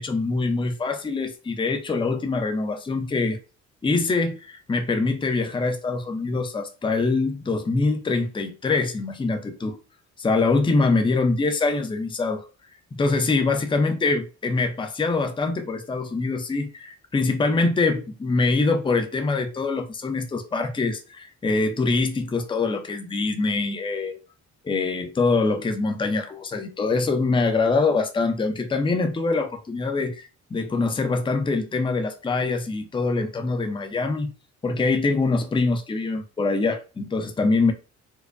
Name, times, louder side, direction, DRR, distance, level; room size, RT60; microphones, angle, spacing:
voice 1, 0.0-3.4 3.8-9.8 10.2-12.5 12.9-24.2 24.6-34.3 34.6-37.7, left 3 dB, 15° left, 0.6 m, -24 dB
4.5 x 2.1 x 2.5 m
cardioid pair, 90°, 30 cm